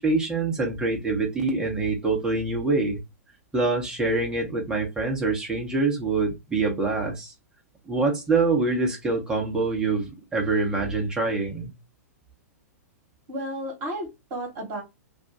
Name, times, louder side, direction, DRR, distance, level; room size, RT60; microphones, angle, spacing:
voice 1, 0.0-3.0 3.5-7.3 7.9-11.7, right 3 dB, 10° right, 0.9 m, -25 dB
voice 2, 13.3-14.8, right 1 dB, 40° right, 1.2 m, -33 dB
2.4 x 2.3 x 2.7 m
figure-of-eight pair, 110°, 9 cm